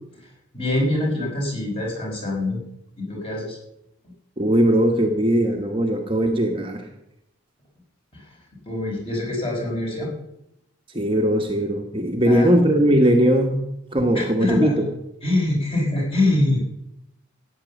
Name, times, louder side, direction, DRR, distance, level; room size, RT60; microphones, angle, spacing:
voice 1, 0.5-2.6 3.0-3.6 8.1-8.3 8.6-10.1 12.2-12.5 14.1-14.8 15.2-16.7, left 1 dB, 25° left, -2 dB, 4.9 m, -24 dB
voice 2, 4.4-6.9 10.9-13.6 13.9-14.8, equal, 25° right, 2 dB, 1.3 m, -19 dB
14.5 x 9.0 x 7.1 m, 0.82 s
head